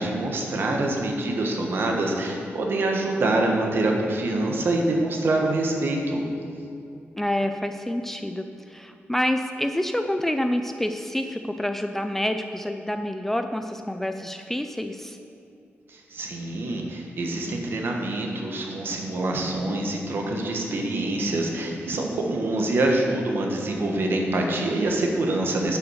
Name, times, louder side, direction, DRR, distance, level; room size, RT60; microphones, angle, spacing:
voice 1, 0.0-6.2 15.9-25.8, right 2 dB, 55° right, 1 dB, 1.4 m, -25 dB
voice 2, 7.2-15.2, left 1 dB, 5° left, 7 dB, 0.3 m, -28 dB
10.0 x 5.9 x 6.4 m, 2.6 s
wide cardioid pair, 155°, 4 cm